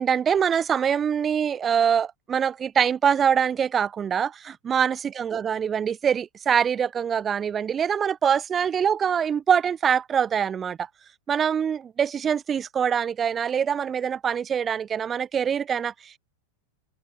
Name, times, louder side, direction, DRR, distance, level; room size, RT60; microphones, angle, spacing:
voice 1, 0.0-10.9 11.3-16.2, right 7 dB, 20° right, 0.3 m, -24 dB
figure-of-eight pair, 90°, 0 cm